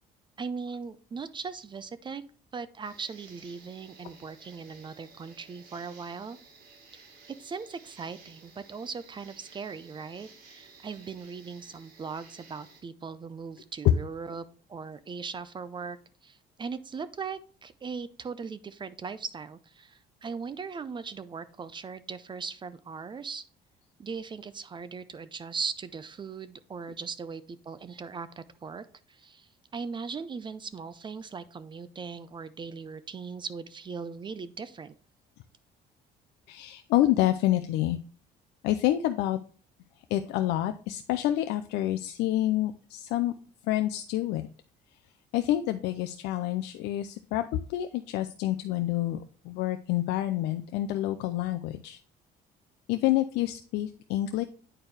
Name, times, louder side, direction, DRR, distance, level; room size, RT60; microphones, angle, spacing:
voice 1, 0.4-2.2 2.5-6.4 6.9-7.0 7.4-16.0 16.2-23.4 24.0-34.9, right 5 dB, 30° right, 14 dB, 0.5 m, -39 dB
sound 1, 2.8-12.8, right 4 dB, 70° right, 2.2 m, -55 dB
voice 2, 36.5-38.0 38.6-39.4 40.1-43.3 43.7-44.4 45.3-47.4 47.7-49.2 49.4-52.0 52.9-54.4, left 14 dB, 90° left, 8 dB, 0.5 m, -28 dB
8.7 x 4.5 x 3.3 m, 0.42 s
cardioid pair, 110°, 17 cm